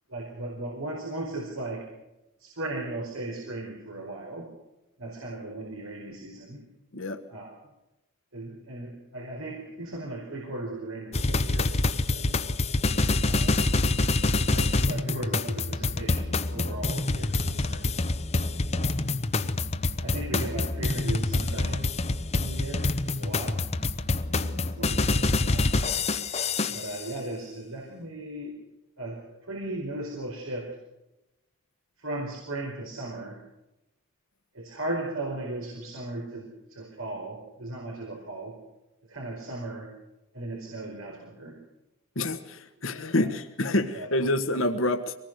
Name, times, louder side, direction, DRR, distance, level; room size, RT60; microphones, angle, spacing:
voice 1, 0.1-1.9 2.4-4.5 5.0-6.6 7.3-7.5 8.3-12.4 13.3-13.7 14.5-17.9 18.7-19.1 20.0-21.9 22.4-23.6 24.3-26.1 26.7-28.6 29.0-30.7 32.0-33.4 34.5-38.6 39.1-39.9 40.3-41.6 43.2-43.3 43.9-44.1, right 2 dB, 80° right, -1 dB, 4.7 m, -37 dB
sound 1, 11.1-27.0, left 2 dB, 30° left, 0.9 m, -26 dB
voice 2, 42.1-45.1, left 1 dB, 75° left, 6 dB, 1.6 m, -27 dB
25.0 x 19.5 x 6.7 m, 0.95 s
head